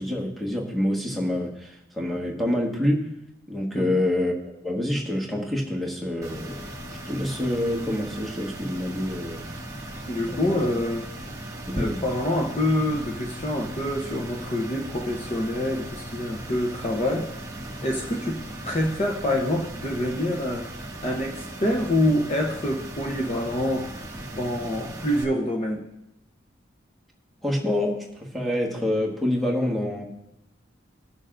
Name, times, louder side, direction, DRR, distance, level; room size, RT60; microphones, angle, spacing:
voice 1, 0.0-3.1 3.5-6.6 7.1-9.5 10.3-10.6 11.7-12.0 27.4-30.0, left 1 dB, ahead, -1 dB, 1.4 m, -27 dB
sound 1, 6.2-25.2, right 1 dB, 20° right, 1.2 m, -37 dB
voice 2, 10.1-11.1 11.7-17.3 17.8-20.7 21.0-23.9 24.3-25.9, left 1 dB, 35° left, 1 dB, 0.8 m, -26 dB
19.5 x 6.6 x 2.5 m, 0.87 s
head